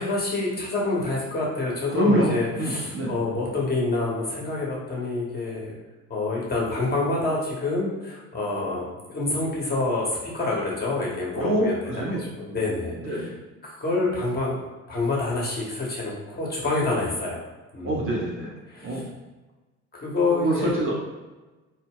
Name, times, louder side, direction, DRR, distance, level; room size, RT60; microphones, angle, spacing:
voice 1, 0.0-5.7 6.1-10.1 10.3-13.3 13.6-14.6 14.9-17.4 17.7-18.0 18.7-19.0 19.9-20.8, left 3 dB, 20° left, -4 dB, 0.8 m, -27 dB
voice 2, 1.9-3.1 11.4-12.2 13.0-13.3 17.8-18.5 18.8-19.1 20.3-20.9, right 1 dB, 30° right, -4 dB, 0.6 m, -25 dB
2.1 x 2.1 x 3.6 m, 1.2 s
figure-of-eight pair, 55°, 43 cm